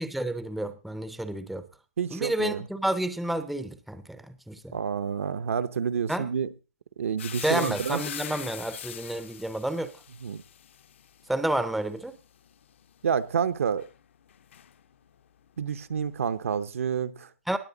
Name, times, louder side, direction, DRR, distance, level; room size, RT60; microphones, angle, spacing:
voice 1, 0.0-1.6 2.1-4.8 6.1-6.3 7.4-9.9 11.3-12.1 17.5-17.6, right 1 dB, ahead, 0.6 m, -30 dB
voice 2, 2.0-2.7 4.7-6.5 7.0-8.0 10.2-10.4 13.0-13.9 15.6-17.3, right 7 dB, 65° right, 0.9 m, -29 dB
sound 1, 7.2-15.2 15.4-16.6, left 9 dB, 55° left, 0.9 m, -43 dB
19.5 x 7.0 x 3.9 m
hypercardioid pair, 150°, 8 cm